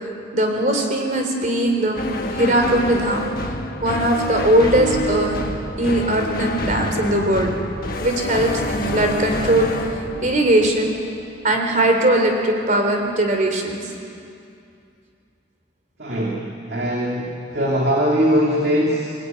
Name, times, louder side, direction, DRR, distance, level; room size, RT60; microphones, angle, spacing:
voice 1, 0.3-2.0 2.3-3.3 3.8-5.4 5.8-7.5 8.0-9.7 10.2-10.9 11.4-13.8, right 1 dB, 40° right, 3 dB, 3.7 m, -19 dB
sound 1, 2.0-11.4, left 1 dB, 50° left, 1.4 m, -27 dB
voice 2, 16.0-19.1, equal, 55° right, -2 dB, 2.7 m, -21 dB
23.5 x 19.5 x 9.5 m, 2.5 s
head